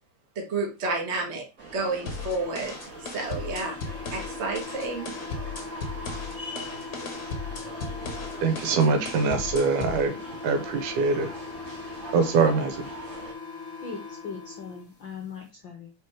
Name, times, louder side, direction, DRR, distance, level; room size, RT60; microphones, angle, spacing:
voice 1, 0.3-1.4 1.7-3.8 4.1-5.1, right 3 dB, 65° right, 1 dB, 0.6 m, -30 dB
sound 1, 1.6-13.3, right 2 dB, 30° right, 1.9 m, -43 dB
sound 2, 2.1-10.0, left 4 dB, 55° left, 1.2 m, -37 dB
sound 3, 2.7-14.8, left 4 dB, 5° left, 2.5 m, -40 dB
voice 2, 8.4-10.1 10.4-11.3 12.1-12.9, right 4 dB, 80° right, 7 dB, 2.5 m, -23 dB
voice 3, 13.8-15.9, left 5 dB, 70° left, 3 dB, 1.1 m, -39 dB
5.1 x 4.3 x 4.7 m, 0.31 s
omnidirectional pair, 3.6 m